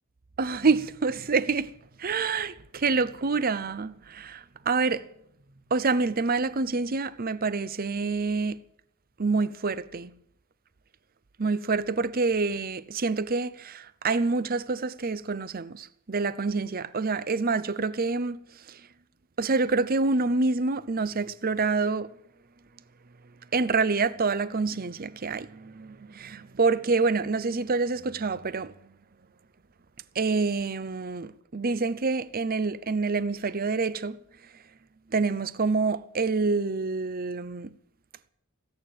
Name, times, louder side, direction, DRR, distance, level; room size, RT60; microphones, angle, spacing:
voice 1, 0.4-5.1 5.7-8.6 9.2-10.1 11.4-18.8 19.4-22.1 23.5-28.7 30.1-34.2 35.1-37.7, right 4 dB, 40° right, 0.7 m, -27 dB
17.5 x 8.8 x 9.2 m
head